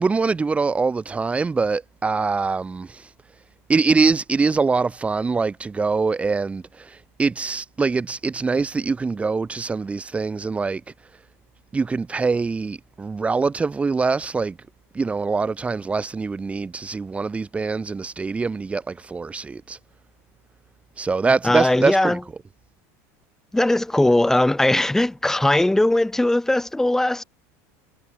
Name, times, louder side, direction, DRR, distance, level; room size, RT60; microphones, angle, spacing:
voice 1, 0.0-3.1 3.7-10.8 11.7-14.6 14.9-19.8 21.0-22.2, right 4 dB, 15° right, 3.5 m, -23 dB
voice 2, 21.4-22.2 23.5-27.2, left 1 dB, 5° left, 5.2 m, -19 dB
supercardioid pair, 130°, 8 cm